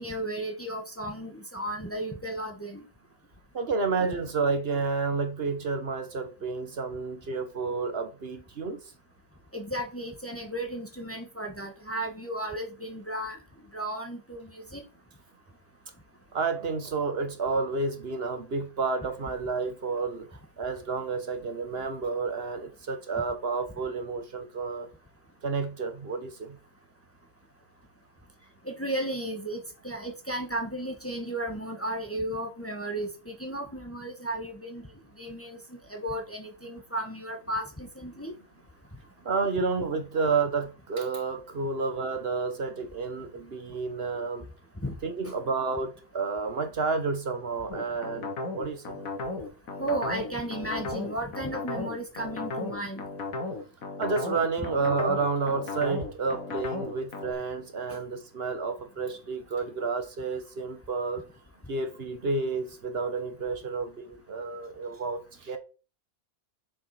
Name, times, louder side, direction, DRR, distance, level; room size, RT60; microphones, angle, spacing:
voice 1, 0.0-2.8 9.5-13.4 13.7-14.8 28.6-34.9 35.2-38.3 44.8-44.9 45.2-45.3 49.8-53.0 57.9-58.0, right 1 dB, 10° left, 1.4 m, -34 dB
voice 2, 3.5-8.8 16.3-20.3 20.6-24.9 25.4-26.6 39.2-44.5 45.0-49.0 54.0-61.2 61.7-65.6, right 4 dB, 40° right, 1.4 m, -30 dB
sound 1, 47.7-57.3, left 3 dB, 60° left, 1.9 m, -35 dB
6.7 x 6.5 x 4.9 m
omnidirectional pair, 1.7 m